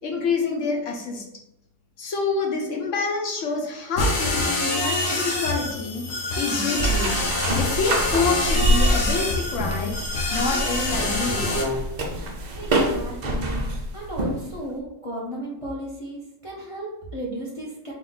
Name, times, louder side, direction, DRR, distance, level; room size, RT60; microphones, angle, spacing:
voice 1, 0.0-1.2 2.0-6.1 6.4-7.2 7.6-10.0 10.3-11.5, left 4 dB, 60° left, 1 dB, 1.1 m, -27 dB
sound 1, 4.0-11.6, left 2 dB, 90° left, 1.5 m, -26 dB
sound 2, 6.8-14.6, right 1 dB, 65° right, 0.4 m, -26 dB
voice 2, 12.6-13.6 13.9-17.9, right 1 dB, 30° left, -4 dB, 0.7 m, -34 dB
3.9 x 2.9 x 3.9 m, 0.86 s
omnidirectional pair, 1.6 m